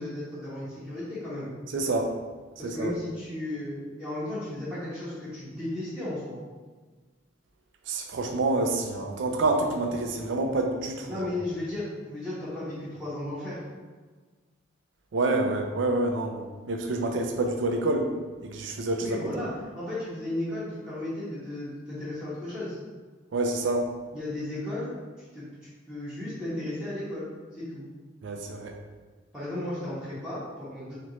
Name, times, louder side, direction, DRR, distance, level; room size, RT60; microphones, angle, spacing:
voice 1, 0.0-1.5 2.6-6.4 11.1-13.6 19.0-22.8 24.1-27.9 29.3-30.9, left 1 dB, 5° right, -12 dB, 0.7 m, -35 dB
voice 2, 1.7-2.2 2.6-2.9 7.9-11.2 15.1-18.1 18.4-19.5 23.3-23.9 28.2-28.7, right 2 dB, 70° right, 3 dB, 0.4 m, -27 dB
3.0 x 2.5 x 2.9 m, 1.4 s
head